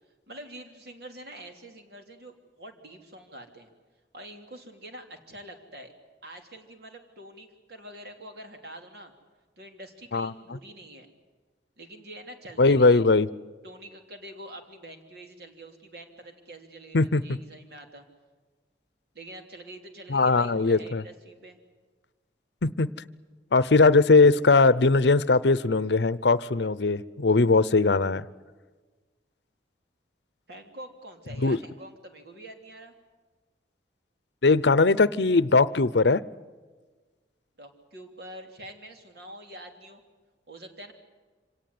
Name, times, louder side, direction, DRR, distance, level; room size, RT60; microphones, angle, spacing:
voice 1, 0.3-3.7 4.1-5.9 6.2-9.1 9.6-11.1 11.8-13.0 13.6-18.0 19.1-21.6 30.5-32.9 37.6-40.0 40.5-40.9, right 1 dB, 65° right, 4 dB, 3.3 m, -45 dB
voice 2, 12.6-13.3 16.9-17.2 20.1-21.0 22.6-22.9 23.5-28.2 31.4-31.6 34.4-36.2, left 3 dB, 70° left, 18 dB, 0.7 m, -20 dB
26.0 x 18.0 x 9.5 m, 1.4 s
head